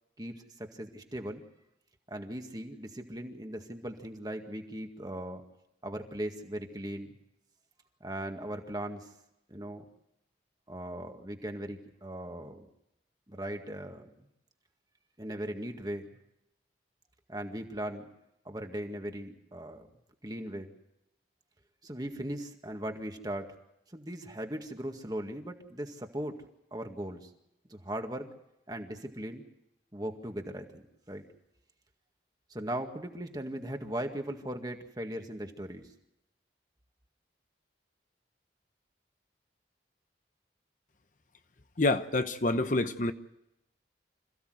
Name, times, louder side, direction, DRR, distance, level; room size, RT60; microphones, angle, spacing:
voice 1, 0.2-1.4 2.1-5.4 5.8-7.2 8.0-9.1 9.5-9.9 10.7-12.7 13.3-14.1 15.2-16.1 17.3-18.1 18.5-19.9 20.2-20.7 21.8-23.6 23.9-26.4 26.7-27.3 27.7-28.3 28.7-29.4 29.9-31.2 32.5-35.8, right 1 dB, 20° right, 4 dB, 1.9 m, -38 dB
voice 2, 41.8-43.1, left 2 dB, 45° left, 9 dB, 0.9 m, -27 dB
26.5 x 16.0 x 7.9 m, 0.87 s
head